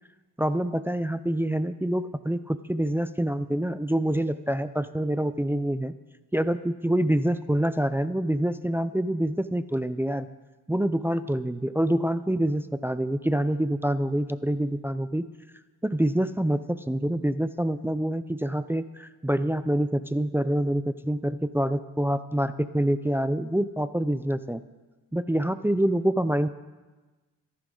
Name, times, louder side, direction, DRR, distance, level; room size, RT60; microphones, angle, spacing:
voice 1, 0.4-5.9 6.3-10.3 10.7-15.3 15.8-24.6 25.1-26.5, right 1 dB, 5° right, 12 dB, 0.5 m, -26 dB
24.5 x 11.0 x 3.9 m, 1.2 s
cardioid pair, 100°, 34 cm